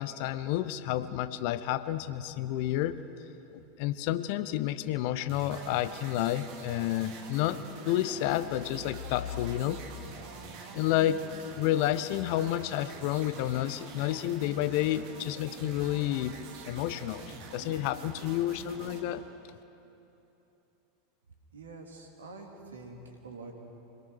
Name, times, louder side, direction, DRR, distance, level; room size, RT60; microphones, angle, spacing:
voice 1, 0.0-3.0 3.5-9.8 10.7-11.2 11.5-19.2, left 13 dB, 50° left, 13 dB, 0.8 m, -30 dB
sound 1, 5.3-19.0, right 4 dB, 45° right, 2.6 m, -46 dB
voice 2, 21.5-23.5, right 3 dB, 70° right, 1 dB, 3.0 m, -46 dB
26.0 x 18.5 x 6.4 m, 2.9 s
figure-of-eight pair, 85°, 0 cm